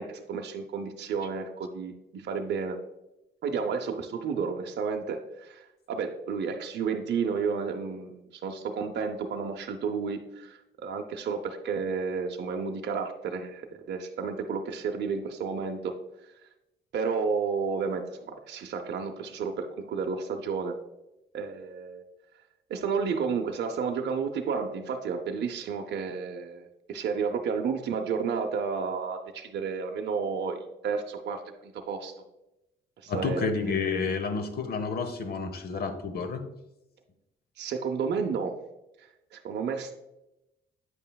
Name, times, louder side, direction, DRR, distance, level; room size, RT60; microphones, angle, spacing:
voice 1, 0.0-2.8 3.4-16.0 16.9-20.8 21.3-22.0 22.7-32.1 33.0-33.5 37.6-38.6 39.0-39.9, right 5 dB, 60° right, 3 dB, 0.6 m, -31 dB
voice 2, 33.1-36.4, left 4 dB, 50° left, 8 dB, 0.9 m, -30 dB
8.2 x 5.4 x 2.3 m, 0.92 s
cardioid pair, 90°, 20 cm